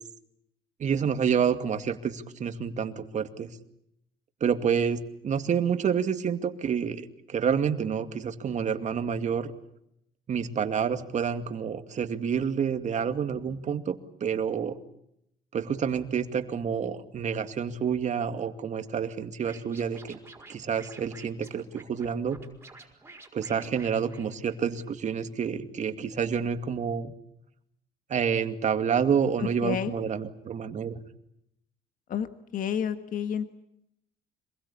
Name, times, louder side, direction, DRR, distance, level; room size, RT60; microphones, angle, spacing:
voice 1, 0.8-3.5 4.4-7.0 7.3-9.5 10.3-14.8 15.5-20.2 20.5-22.4 23.3-27.1 28.1-31.0, right 7 dB, 45° right, 8 dB, 2.3 m, -28 dB
Scratching (performance technique), 19.4-24.9, right 3 dB, 15° right, 5.4 m, -50 dB
voice 2, 29.4-29.9 32.1-32.3 32.5-33.5, left 8 dB, 55° left, 10 dB, 1.6 m, -30 dB
26.5 x 21.5 x 8.6 m, 0.78 s
cardioid pair, 110°, 17 cm